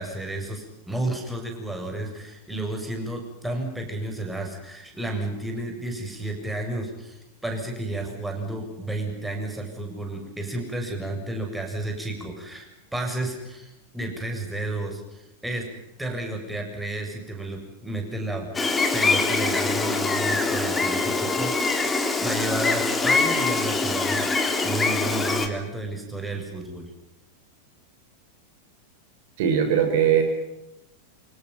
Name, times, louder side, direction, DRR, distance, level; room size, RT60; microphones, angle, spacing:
voice 1, 0.0-15.7 16.0-18.5 18.9-24.3 24.6-26.9, right 2 dB, 5° right, 2 dB, 7.5 m, -32 dB
Gull seagull, 18.5-25.5, left 3 dB, 15° left, 3.4 m, -24 dB
voice 2, 29.4-30.2, right 8 dB, 50° right, 6 dB, 4.0 m, -20 dB
28.0 x 26.5 x 5.9 m, 0.90 s
figure-of-eight pair, 90°, 0 cm